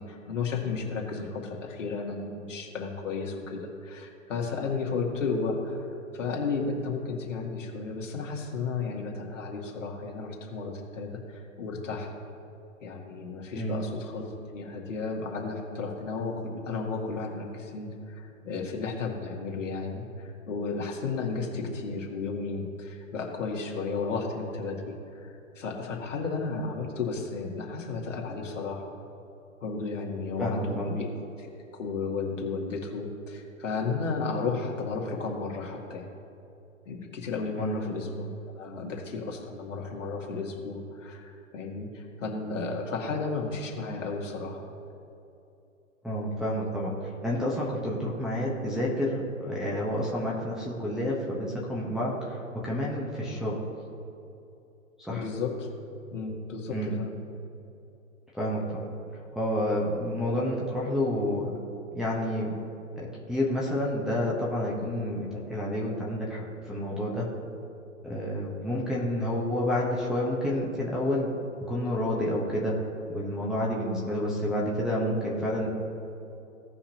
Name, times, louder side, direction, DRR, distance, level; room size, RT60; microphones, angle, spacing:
voice 1, 0.0-12.1 12.8-28.9 29.6-31.1 31.4-36.1 36.9-38.3 38.6-44.7 55.1-55.7 56.1-57.2, left 4 dB, 65° left, -1 dB, 2.2 m, -33 dB
voice 2, 30.4-31.0 37.6-37.8 46.0-46.9 47.2-53.6 55.0-55.3 56.7-57.0 58.3-61.6 61.9-62.5 63.0-67.3 68.0-71.3 71.7-72.7 73.1-75.7, left 1 dB, ahead, -7 dB, 1.2 m, -29 dB
17.0 x 5.7 x 2.9 m, 2.8 s
figure-of-eight pair, 120°, 40 cm